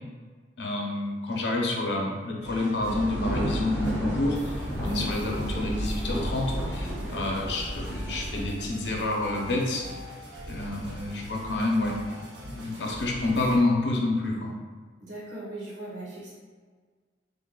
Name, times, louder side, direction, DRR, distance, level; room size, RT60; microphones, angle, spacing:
voice 1, 0.6-4.6 4.8-9.8 10.5-12.0 12.4-14.5, left 2 dB, 70° left, -1 dB, 0.7 m, -28 dB
sound 1, 2.4-13.6, equal, 70° right, 0.7 m, -42 dB
sound 2, 2.9-8.5, equal, 10° right, 0.5 m, -34 dB
Thunder, 3.1-8.9, equal, 20° left, 1.2 m, -36 dB
voice 2, 15.0-16.3, right 2 dB, 85° right, -6 dB, 1.5 m, -39 dB
3.8 x 3.3 x 2.3 m, 1.5 s
head